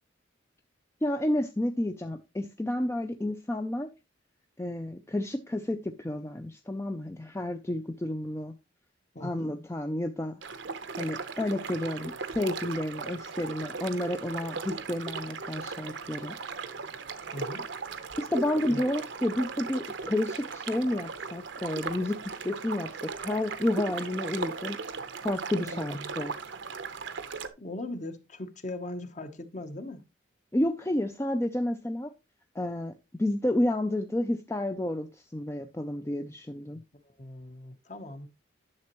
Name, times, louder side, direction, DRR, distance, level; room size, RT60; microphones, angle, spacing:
voice 1, 1.0-3.9 4.6-8.5 9.2-10.4 11.0-16.3 18.2-22.9 23.2-24.8 25.2-26.3 30.5-32.1 32.6-32.9 33.2-36.8, left 1 dB, 15° left, 0.4 m, -30 dB
voice 2, 9.1-9.5 17.3-17.7 18.7-18.8 25.6-26.1 27.6-30.0 37.0-38.3, left 1 dB, 35° left, 0.9 m, -39 dB
sound 1, 10.4-27.5, right 4 dB, 65° right, 0.8 m, -37 dB
10.5 x 6.9 x 3.0 m
head